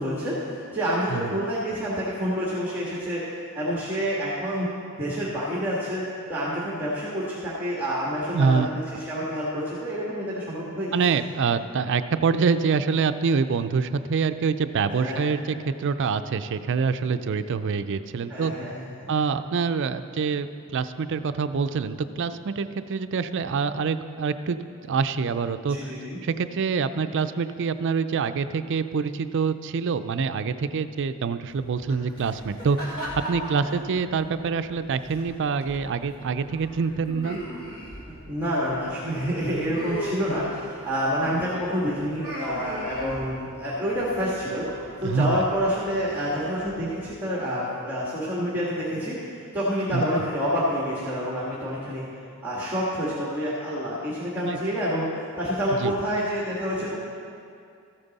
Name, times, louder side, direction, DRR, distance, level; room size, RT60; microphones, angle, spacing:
voice 1, 0.0-3.2 3.5-4.7 5.0-6.0 6.3-11.0 14.9-15.3 18.3-19.1 25.7-26.2 33.6-33.9 38.1-44.7 45.0-49.2 49.5-52.0 52.4-55.1 55.4-56.9, equal, 10° right, -7 dB, 1.5 m, -28 dB
voice 2, 8.3-8.7 10.9-18.5 19.1-25.8 26.2-33.0 33.3-37.4 45.0-45.4 49.9-50.0 54.4-54.6 55.8-55.9, right 5 dB, 55° right, 11 dB, 0.4 m, -26 dB
sound 1, 31.5-47.1, equal, 80° left, 2.6 m, -39 dB
14.0 x 8.8 x 4.1 m, 2.4 s
head